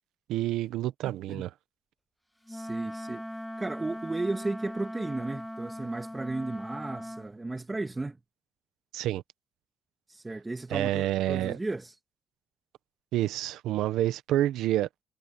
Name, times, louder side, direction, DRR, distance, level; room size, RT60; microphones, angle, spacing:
voice 1, 0.3-1.5 8.9-9.2 10.7-11.6 13.1-14.9, right 13 dB, 90° right, 1.0 m, -28 dB
voice 2, 1.0-1.5 2.5-3.2 3.6-8.2 10.1-12.0, right 2 dB, 20° right, 2.0 m, -34 dB
Wind instrument woodwind instrument, 2.5-7.3, equal, 5° left, 0.6 m, -39 dB
cardioid pair, 90°, 0 cm